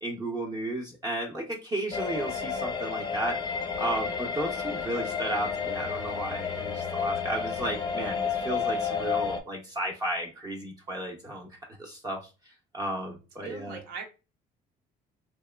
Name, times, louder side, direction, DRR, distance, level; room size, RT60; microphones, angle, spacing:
voice 1, 0.0-3.4 3.8-11.5 11.8-12.2 12.7-13.8, right 1 dB, 20° right, -1 dB, 0.6 m, -33 dB
sound 1, 1.9-9.4, left 6 dB, 25° left, 0.5 m, -31 dB
voice 2, 13.4-14.0, right 5 dB, 75° right, 2 dB, 0.7 m, -40 dB
2.8 x 2.1 x 2.2 m, 0.30 s
cardioid pair, 110°, 17 cm